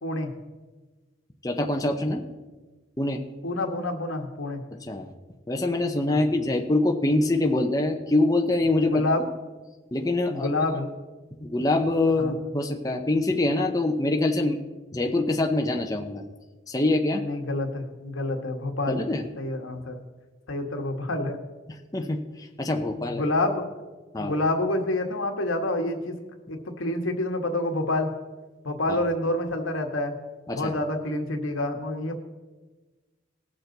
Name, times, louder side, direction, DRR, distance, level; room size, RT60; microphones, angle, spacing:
voice 1, 0.0-0.3 3.4-4.6 6.1-6.2 8.9-9.2 10.3-10.9 12.2-12.3 17.1-19.0 19.4-20.0 20.5-21.4 23.0-23.6 24.1-26.1 26.5-28.1 28.6-30.2 30.5-32.2, left 2 dB, 85° left, 4 dB, 1.5 m, -28 dB
voice 2, 1.4-2.2 3.0-3.2 4.9-5.1 5.5-9.1 9.9-10.5 11.4-14.6 14.9-16.2 16.7-17.2 18.9-19.3 21.9-23.2 24.1-24.4 28.9-29.0 30.5-30.7, left 2 dB, 20° left, 3 dB, 0.7 m, -24 dB
19.5 x 6.9 x 4.0 m, 1.2 s
head